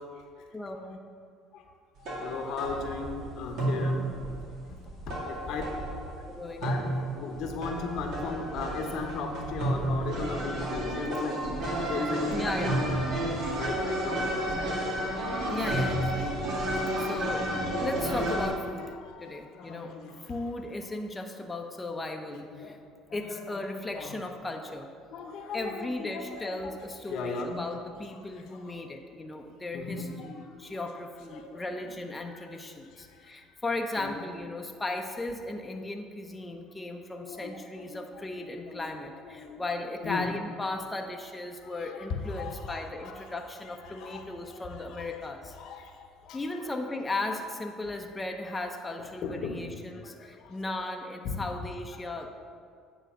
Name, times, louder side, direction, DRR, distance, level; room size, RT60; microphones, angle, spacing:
voice 1, 0.5-1.0 5.5-5.7 6.3-6.6 12.3-12.8 15.5-16.4 16.7-17.5 17.8-18.9 19.2-19.9 20.3-22.8 23.1-24.9 25.5-45.5 46.3-52.3, left 2 dB, 15° left, 3 dB, 0.7 m, -36 dB
voice 2, 2.0-4.2 4.7-5.7 6.6-6.8 7.1-11.4 11.9-12.5 13.5-14.7 19.0-20.3 22.5-22.7 23.1-24.1 25.1-26.7 27.1-27.7 28.5-28.7 29.7-30.7 31.3-31.7 33.1-33.3 34.0-34.3 37.1-38.1 38.4-38.9 39.2-39.6 40.0-40.3 41.6-43.4 43.8-46.4 48.8-48.9 49.2-49.7 50.0-50.6 51.2-51.6 52.0-52.1, left 4 dB, 65° left, 4 dB, 0.9 m, -37 dB
sound 1, 2.0-18.5, right 1 dB, 65° right, 2.1 m, -31 dB
9.0 x 4.0 x 6.2 m, 2.2 s
hypercardioid pair, 70°, 0 cm